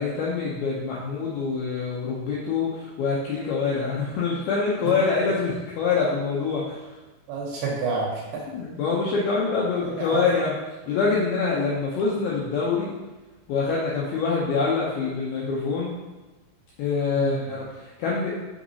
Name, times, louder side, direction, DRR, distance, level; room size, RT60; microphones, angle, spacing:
voice 1, 0.0-7.0 8.5-10.6 10.9-12.9 13.5-15.9 16.8-18.3, left 4 dB, 80° left, -5 dB, 2.2 m, -25 dB
voice 2, 7.3-8.5 9.7-10.2 17.2-17.4, right 4 dB, 75° right, -3 dB, 2.6 m, -29 dB
6.3 x 5.8 x 2.7 m, 1.2 s
omnidirectional pair, 5.2 m